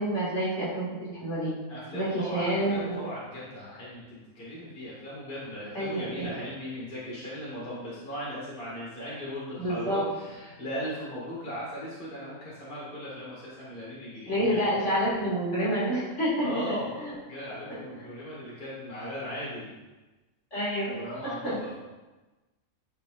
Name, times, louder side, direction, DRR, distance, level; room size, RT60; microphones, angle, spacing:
voice 1, 0.0-1.6 1.9-3.0 5.7-6.3 9.6-10.0 14.3-17.1 17.9-18.1 20.5-20.9 21.2-21.6, equal, 55° left, -8 dB, 2.5 m, -28 dB
voice 2, 1.7-14.6 16.4-19.7 20.9-21.7, equal, 40° left, -8 dB, 2.2 m, -38 dB
12.0 x 4.5 x 2.5 m, 1.2 s
omnidirectional pair, 1.5 m